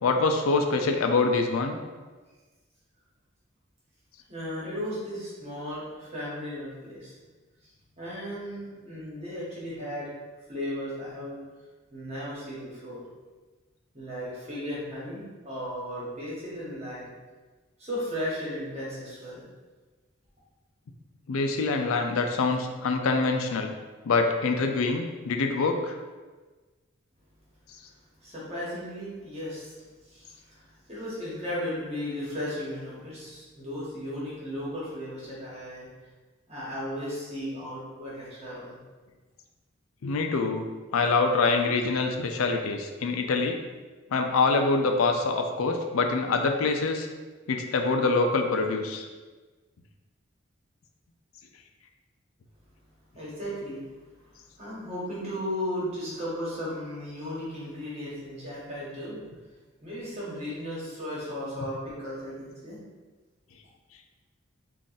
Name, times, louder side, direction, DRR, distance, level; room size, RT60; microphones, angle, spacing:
voice 1, 0.0-1.8 21.3-23.7 24.0-26.0 40.0-40.7 40.9-43.6 44.1-47.1 47.5-49.1, left 3 dB, 85° left, 4 dB, 0.4 m, -25 dB
voice 2, 4.3-7.1 8.0-10.1 10.5-11.4 11.9-13.0 13.9-17.1 17.8-19.4 28.2-29.8 30.0-35.9 36.5-38.8 53.1-53.8 54.1-59.2 59.8-62.8, equal, 30° right, -8 dB, 1.3 m, -35 dB
3.6 x 2.5 x 4.0 m, 1.3 s
head